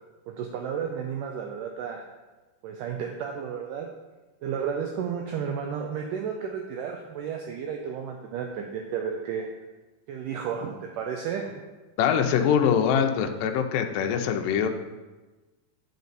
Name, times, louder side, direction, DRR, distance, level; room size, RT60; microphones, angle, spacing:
voice 1, 0.3-2.0 2.6-3.9 4.4-9.5 10.1-11.6, right 7 dB, 85° right, 2 dB, 1.9 m, -32 dB
voice 2, 12.0-14.7, left 8 dB, 80° left, 5 dB, 2.1 m, -23 dB
10.5 x 5.1 x 4.0 m, 1.2 s
omnidirectional pair, 4.4 m